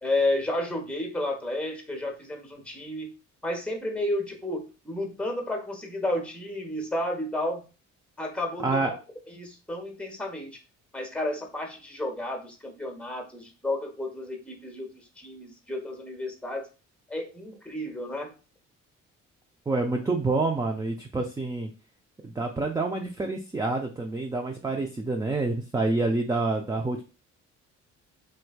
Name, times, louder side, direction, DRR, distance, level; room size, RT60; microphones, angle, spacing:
voice 1, 0.0-3.1 3.4-7.6 8.2-9.0 9.3-10.6 10.9-16.7 17.1-18.3, left 1 dB, 5° left, 3 dB, 0.9 m, -32 dB
voice 2, 8.6-8.9 19.7-21.7 22.2-27.0, right 3 dB, 10° right, 2 dB, 0.4 m, -27 dB
3.3 x 3.1 x 2.2 m, 0.33 s
cardioid pair, 90°, 30 cm